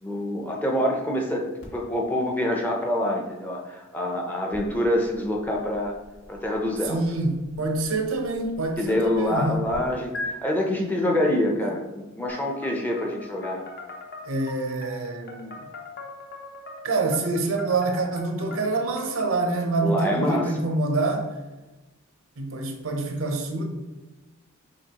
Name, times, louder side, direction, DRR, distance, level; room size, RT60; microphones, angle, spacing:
voice 1, 0.0-5.9 6.3-7.0 8.8-10.1 10.4-13.6 19.8-20.6, left 1 dB, 10° left, 0 dB, 0.5 m, -26 dB
sound 1, 1.6-9.8 10.1-10.3, left 2 dB, 75° left, 0.8 m, -44 dB
voice 2, 6.9-9.6 11.6-11.7 14.3-15.6 16.8-21.2 22.4-23.6, right 2 dB, 80° right, 4 dB, 0.7 m, -26 dB
sound 2, 12.3-19.5, left 3 dB, 45° left, 0.6 m, -43 dB
5.1 x 3.1 x 2.8 m, 1.1 s
head